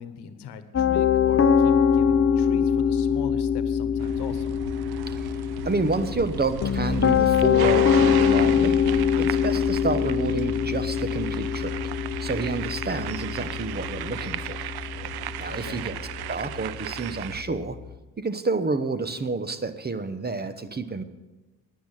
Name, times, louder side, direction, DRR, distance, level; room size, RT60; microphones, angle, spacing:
voice 1, 0.0-4.6 15.5-15.8, left 7 dB, 80° left, 11 dB, 1.2 m, -40 dB
Piano, 0.7-17.9, left 7 dB, 35° left, 0.8 m, -24 dB
sound 1, 4.0-17.4, right 14 dB, 70° right, 0.5 m, -36 dB
voice 2, 5.6-8.8 9.2-11.8 12.2-14.6 15.4-16.0 16.3-17.8 18.2-21.0, right 3 dB, 25° right, 11 dB, 1.0 m, -29 dB
10.5 x 10.0 x 7.5 m, 1.1 s
cardioid pair, 75°, 40 cm